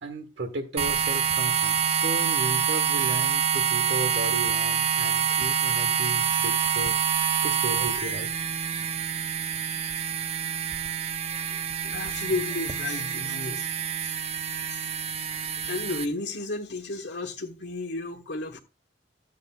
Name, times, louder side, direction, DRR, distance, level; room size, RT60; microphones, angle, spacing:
voice 1, 0.0-6.9 7.4-8.3, right 1 dB, 80° right, 1.4 m, -35 dB
sound 1, 0.8-16.1, right 7 dB, 35° right, 0.5 m, -27 dB
voice 2, 11.3-13.7 14.0-14.2 14.6-14.8 15.6-18.6, left 3 dB, 75° left, 1.3 m, -33 dB
13.5 x 8.3 x 2.3 m
head